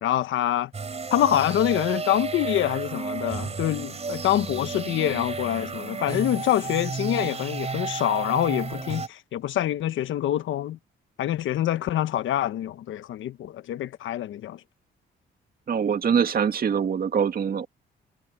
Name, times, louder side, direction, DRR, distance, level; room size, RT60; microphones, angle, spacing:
voice 1, 0.0-0.7 1.1-10.8 11.2-14.6, left 12 dB, 75° left, 1.1 m, -25 dB
sound 1, 0.7-9.1, right 4 dB, 35° right, 3.5 m, -32 dB
voice 2, 15.7-17.7, right 7 dB, 50° right, 2.1 m, -23 dB
cardioid pair, 90°, 20 cm